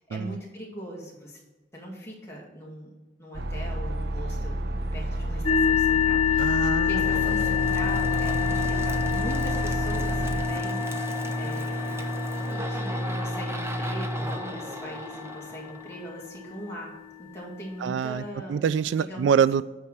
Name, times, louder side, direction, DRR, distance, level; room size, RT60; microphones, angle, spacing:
voice 1, 0.1-1.4 1.7-2.9 3.2-4.6 4.9-11.9 12.2-16.9 17.2-18.6 19.0-19.3, equal, 15° left, -4 dB, 2.2 m, -40 dB
sound 1, 3.3-10.4, right 1 dB, 60° right, 0.8 m, -30 dB
sound 2, 5.4-17.0, left 10 dB, 30° left, 1.9 m, -28 dB
voice 2, 6.4-7.3 17.8-19.6, right 7 dB, 90° right, 17 dB, 0.3 m, -25 dB
sound 3, 6.9-16.5, right 1 dB, 15° right, 0.5 m, -32 dB
8.5 x 4.7 x 6.5 m, 1.2 s
head